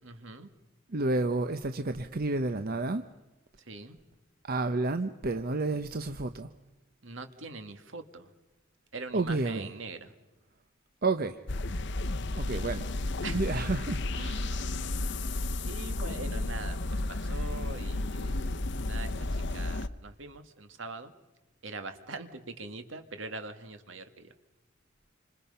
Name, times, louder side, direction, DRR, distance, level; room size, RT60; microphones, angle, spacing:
voice 1, 0.0-0.5 3.7-4.0 7.0-8.3 8.9-10.1 12.5-12.6 13.2-13.4 15.7-18.4 18.9-19.1 19.5-21.1 21.6-24.3, right 3 dB, 75° right, 2.1 m, -42 dB
voice 2, 0.9-3.0 4.4-6.5 9.1-9.7 11.0-11.4 12.4-12.9 13.3-14.7, right 2 dB, 50° right, 0.8 m, -30 dB
sound 1, 11.5-19.9, left 2 dB, 60° left, 0.9 m, -32 dB
28.0 x 26.5 x 5.6 m
head